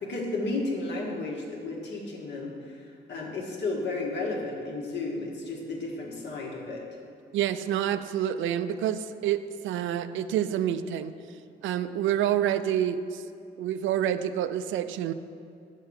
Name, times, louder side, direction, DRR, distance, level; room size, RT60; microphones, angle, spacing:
voice 1, 0.0-6.9, left 2 dB, 65° left, -2 dB, 1.6 m, -33 dB
voice 2, 7.3-11.1 11.6-13.2 13.6-15.1, right 10 dB, 80° right, 11 dB, 0.4 m, -28 dB
6.6 x 5.7 x 6.3 m, 2.4 s
cardioid pair, 90°, 20 cm